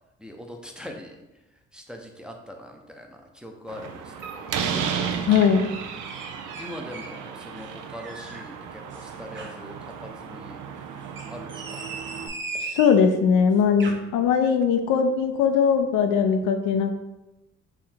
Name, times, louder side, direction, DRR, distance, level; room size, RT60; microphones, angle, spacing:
voice 1, 0.2-1.2 1.7-4.6 6.6-10.6 11.3-11.8, left 1 dB, 5° right, 2 dB, 0.6 m, -42 dB
Slam, 3.7-12.3, right 7 dB, 85° right, 0.5 m, -34 dB
voice 2, 5.2-5.7 12.7-17.0, left 6 dB, 85° left, 6 dB, 0.5 m, -20 dB
sound 1, 6.0-7.2 7.6-8.5 8.9-9.6 11.0-13.0 13.6-13.9, right 3 dB, 40° right, 0.7 m, -38 dB
4.4 x 2.6 x 3.7 m, 1.0 s
cardioid pair, 90°, 30 cm